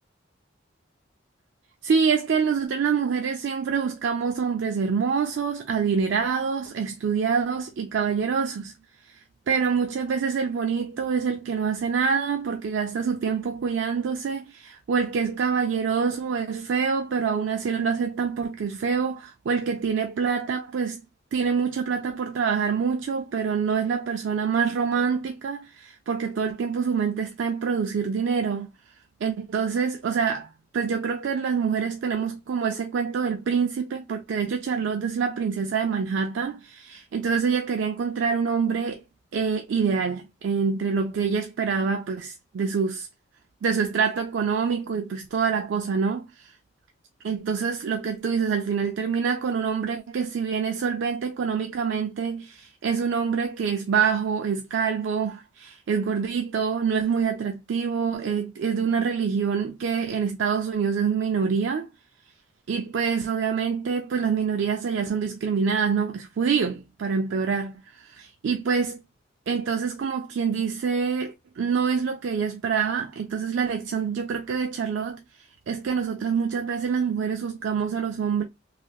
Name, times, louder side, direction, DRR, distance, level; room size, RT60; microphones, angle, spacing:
voice 1, 1.8-8.7 9.1-9.2 9.5-21.0 21.3-28.7 29.2-39.0 39.3-43.1 43.6-46.5 47.2-61.9 62.7-69.0 69.5-75.2 75.7-78.4, right 6 dB, 70° right, 0.4 m, -26 dB
3.2 x 2.7 x 2.3 m
head